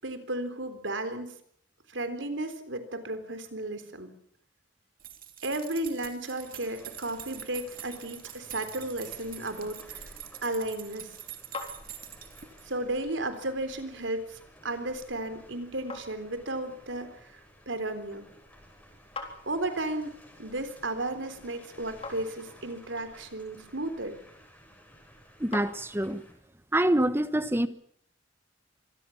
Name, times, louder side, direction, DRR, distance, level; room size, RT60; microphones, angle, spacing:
voice 1, 0.0-1.3 1.9-4.1 5.4-10.0 10.4-11.1 12.7-17.4 17.7-18.3 19.5-24.2, right 1 dB, 85° right, 3.8 m, -34 dB
sound 1, 5.0-12.8, right 10 dB, 50° right, 2.8 m, -45 dB
sound 2, 6.4-26.3, equal, 10° left, 7.4 m, -55 dB
sound 3, 11.2-26.4, left 3 dB, 30° left, 3.8 m, -49 dB
voice 2, 25.4-26.2 26.7-27.7, right 1 dB, 15° right, 1.2 m, -25 dB
26.0 x 19.5 x 7.2 m
head